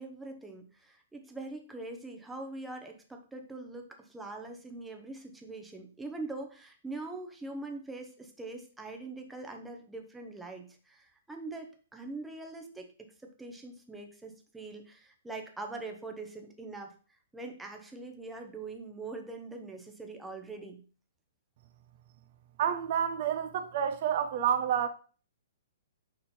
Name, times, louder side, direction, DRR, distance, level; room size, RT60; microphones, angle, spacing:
voice 1, 0.0-16.9 17.3-20.8, right 2 dB, 5° right, 0.7 m, -43 dB
voice 2, 22.6-24.9, right 9 dB, 40° right, 0.5 m, -29 dB
5.3 x 4.2 x 4.3 m
hypercardioid pair, 170°, 0 cm